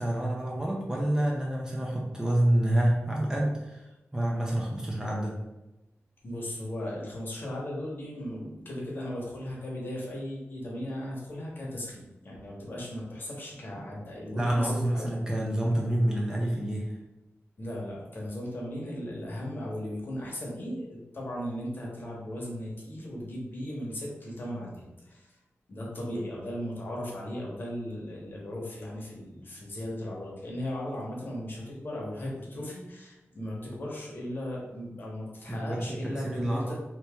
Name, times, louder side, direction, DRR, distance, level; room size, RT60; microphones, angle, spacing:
voice 1, 0.0-3.9 4.1-5.4 14.3-16.9 35.5-36.7, right 1 dB, 15° right, -3 dB, 0.5 m, -28 dB
voice 2, 6.2-15.2 17.6-25.3 25.7-36.7, left 1 dB, 45° left, -3 dB, 1.0 m, -37 dB
2.9 x 2.8 x 3.4 m, 1.0 s
wide cardioid pair, 180°, 5 cm